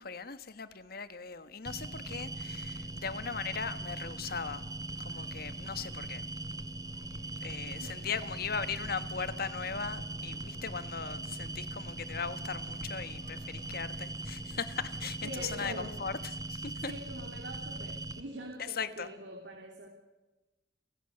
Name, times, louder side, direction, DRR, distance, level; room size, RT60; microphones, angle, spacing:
voice 1, 0.0-4.6 5.0-6.3 7.4-16.9 18.6-19.1, left 5 dB, 60° left, 1.5 m, -38 dB
sound 1, 1.7-18.2, right 2 dB, 20° right, 1.5 m, -40 dB
sound 2, 2.0-15.9, equal, 25° left, 3.6 m, -57 dB
sound 3, 2.0-15.8, right 1 dB, 50° right, 4.2 m, -63 dB
voice 2, 15.2-15.9 16.8-19.9, right 1 dB, 85° right, 3.4 m, -43 dB
29.5 x 16.5 x 6.7 m
head